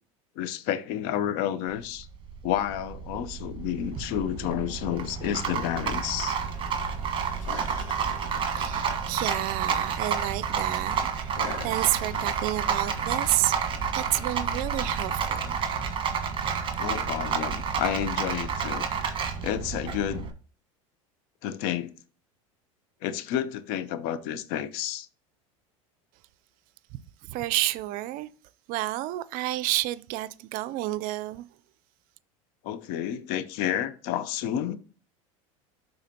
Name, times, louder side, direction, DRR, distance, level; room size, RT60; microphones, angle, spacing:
voice 1, 0.4-2.1 2.4-6.4 16.8-18.9 19.4-20.3 21.4-21.9 23.0-25.1 32.6-34.8, left 10 dB, 65° left, 0.8 m, -30 dB
Rattle, 1.7-20.3, right 6 dB, 30° right, 1.4 m, -30 dB
sound 1, 6.3-15.0, left 2 dB, 90° left, 1.5 m, -42 dB
voice 2, 7.5-7.8 8.5-11.3 11.6-15.6 27.2-28.3 28.7-31.4, right 17 dB, 55° right, 0.5 m, -30 dB
12.0 x 4.0 x 2.9 m
hypercardioid pair, 90°, 17 cm